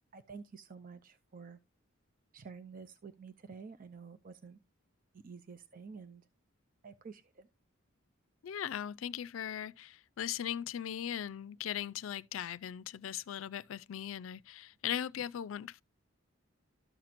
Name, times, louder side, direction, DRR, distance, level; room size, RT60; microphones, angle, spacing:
voice 1, 0.1-1.6 2.3-4.6 5.2-6.2 6.8-7.5, right 5 dB, 45° right, 0.5 m, -50 dB
voice 2, 8.4-15.8, left 10 dB, 80° left, 0.4 m, -39 dB
13.0 x 5.9 x 2.5 m
head